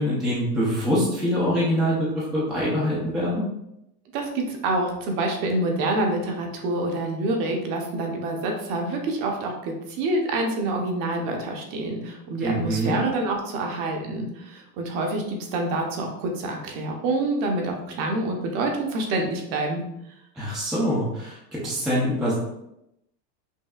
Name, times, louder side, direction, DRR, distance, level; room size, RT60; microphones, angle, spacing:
voice 1, 0.0-3.4 12.4-13.0 20.3-22.3, equal, ahead, -7 dB, 0.5 m, -24 dB
voice 2, 4.1-19.8, right 2 dB, 45° right, 2 dB, 0.8 m, -27 dB
5.5 x 2.6 x 2.4 m, 0.83 s
supercardioid pair, 145°, 50 cm